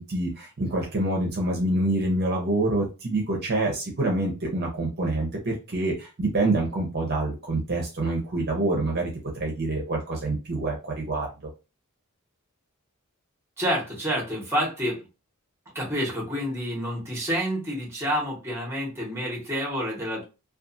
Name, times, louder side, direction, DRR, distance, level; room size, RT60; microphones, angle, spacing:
voice 1, 0.0-9.1 9.4-11.3, right 2 dB, 50° right, 0 dB, 0.7 m, -26 dB
voice 2, 13.6-15.1 15.7-20.2, equal, 10° right, -3 dB, 1.1 m, -28 dB
2.5 x 2.4 x 2.5 m, 0.29 s
head